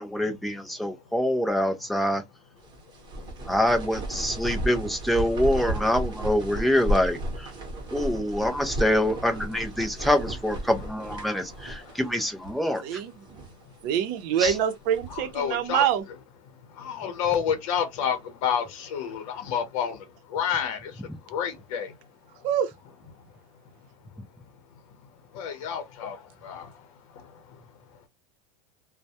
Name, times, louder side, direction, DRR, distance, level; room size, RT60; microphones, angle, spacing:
voice 1, 0.0-2.2 3.5-7.5 7.9-13.0 14.4-14.6, left 1 dB, ahead, 0.3 m, -25 dB
sound 1, 2.6-12.1 12.4-12.5 13.1-13.6 14.2-15.3, right 1 dB, 25° right, 0.8 m, -34 dB
voice 2, 3.2-3.5 11.8-12.0 13.6-13.7 15.1-15.8 16.7-22.0 22.3-22.5 23.1-23.2 25.3-27.6, left 8 dB, 65° left, 0.7 m, -30 dB
voice 3, 12.8-13.1 13.8-16.0 22.4-22.7, right 9 dB, 50° right, 0.6 m, -25 dB
2.2 x 2.1 x 2.7 m
supercardioid pair, 155°, 17 cm